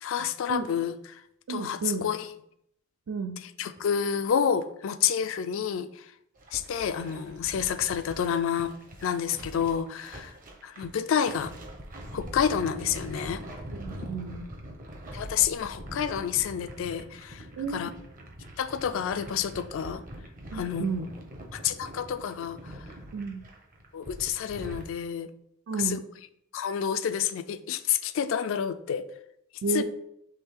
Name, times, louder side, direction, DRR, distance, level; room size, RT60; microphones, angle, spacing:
voice 1, 0.0-0.9 1.5-2.3 3.6-5.9 6.5-8.7 9.0-10.3 10.6-11.5 12.1-13.4 15.1-17.4 17.7-17.9 18.6-20.0 20.5-20.8 21.5-22.7 23.9-25.3 25.8-26.0 26.5-29.1 29.7-29.8, left 8 dB, 65° left, 11 dB, 0.3 m, -29 dB
voice 2, 1.5-2.0 3.1-3.4 13.7-14.5 17.6-17.9 20.5-21.1 23.1-23.4 25.7-26.1 29.6-29.8, right 4 dB, 65° right, 4 dB, 0.4 m, -31 dB
sound 1, 6.4-24.9, right 1 dB, 40° right, 0.8 m, -43 dB
3.7 x 3.1 x 4.4 m, 0.74 s
head